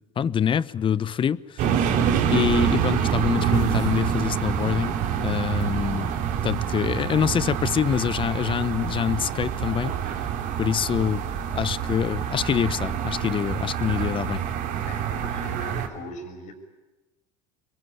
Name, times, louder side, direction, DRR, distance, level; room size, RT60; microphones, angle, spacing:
voice 1, 0.2-1.7 2.3-4.9 5.2-6.1 6.4-9.9 10.6-11.2 11.5-14.4, left 8 dB, 35° left, 0.9 m, -25 dB
sound 1, 1.6-15.9, right 8 dB, 60° right, 3.7 m, -26 dB
voice 2, 14.9-16.5, left 1 dB, 55° left, 6.5 m, -39 dB
26.5 x 22.5 x 9.7 m
hypercardioid pair, 85°, 15 cm